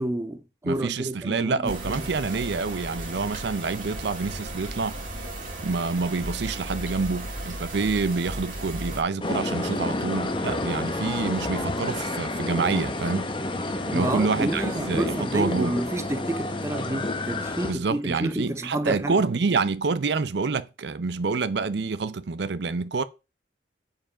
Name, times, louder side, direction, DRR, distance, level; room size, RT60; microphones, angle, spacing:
voice 1, 0.0-2.0 13.9-19.2, right 1 dB, 15° right, 0.5 m, -30 dB
voice 2, 0.6-5.0 5.6-13.3 13.9-15.7 17.6-23.0, right 4 dB, 65° right, 0.5 m, -27 dB
sound 1, 1.7-9.0, right 1 dB, 45° right, 2.1 m, -35 dB
sound 2, 9.2-17.7, left 2 dB, 25° left, 0.8 m, -29 dB
7.5 x 5.0 x 4.9 m
head